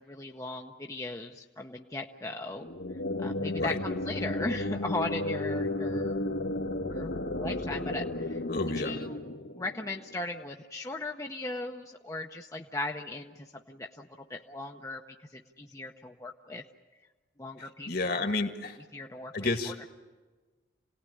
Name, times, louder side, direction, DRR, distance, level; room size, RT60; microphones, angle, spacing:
voice 1, 0.0-2.7 3.2-6.2 6.9-9.1 9.5-15.0 15.3-16.6 17.4-17.9 18.9-19.3 19.7-19.9, left 2 dB, 15° left, 2 dB, 0.8 m, -38 dB
sound 1, 2.5-10.2, left 2 dB, 90° left, 2.0 m, -33 dB
voice 2, 8.5-9.0 17.6-18.8 19.3-19.8, left 3 dB, 55° left, 6 dB, 1.9 m, -31 dB
28.0 x 18.5 x 9.9 m, 1.3 s
head